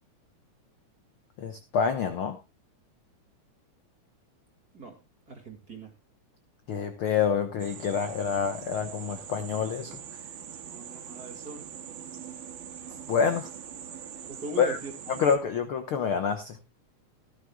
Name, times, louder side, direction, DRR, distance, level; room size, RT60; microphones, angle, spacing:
voice 1, 1.4-2.4 6.7-9.9 13.1-13.5 14.6-14.8 15.1-16.7, left 6 dB, 60° left, 7 dB, 1.4 m, -27 dB
voice 2, 5.3-5.9 10.6-11.7 14.3-15.2, right 3 dB, 30° right, 3 dB, 2.2 m, -40 dB
sound 1, 7.6-15.4, right 9 dB, 80° right, 3.1 m, -43 dB
16.5 x 13.0 x 2.2 m, 0.24 s
omnidirectional pair, 3.7 m